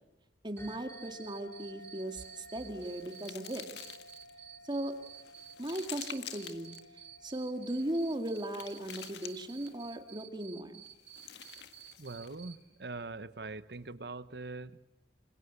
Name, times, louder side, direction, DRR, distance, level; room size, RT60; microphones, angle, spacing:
voice 1, 0.4-3.8 4.6-5.0 5.6-6.8 7.2-10.8, right 1 dB, 25° right, 7 dB, 2.1 m, -37 dB
sound 1, 0.6-9.6, equal, 15° left, 4.7 m, -55 dB
Cricket, 0.6-12.5, right 10 dB, 85° right, 4.3 m, -51 dB
sound 2, 2.1-4.3 4.9-6.8 7.7-9.9 10.9-12.4, left 9 dB, 75° left, 1.8 m, -49 dB
voice 2, 12.0-14.8, right 3 dB, 65° right, 15 dB, 1.0 m, -42 dB
26.5 x 26.0 x 8.2 m, 0.94 s
head